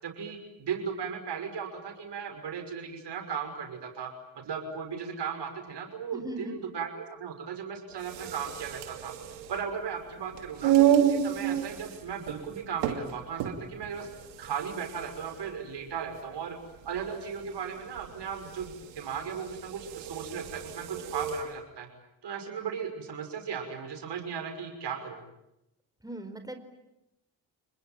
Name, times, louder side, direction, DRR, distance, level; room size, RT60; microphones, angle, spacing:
voice 1, 0.0-4.1 4.4-14.1 14.4-16.6 16.8-21.9 22.2-25.2, right 7 dB, 65° right, 5 dB, 6.1 m, -36 dB
voice 2, 6.1-6.5 26.0-26.6, right 1 dB, 10° right, 7 dB, 4.5 m, -38 dB
sound 1, 7.9-21.5, right 10 dB, 85° right, 2.9 m, -31 dB
29.0 x 21.0 x 9.1 m, 0.89 s
supercardioid pair, 50°, 43 cm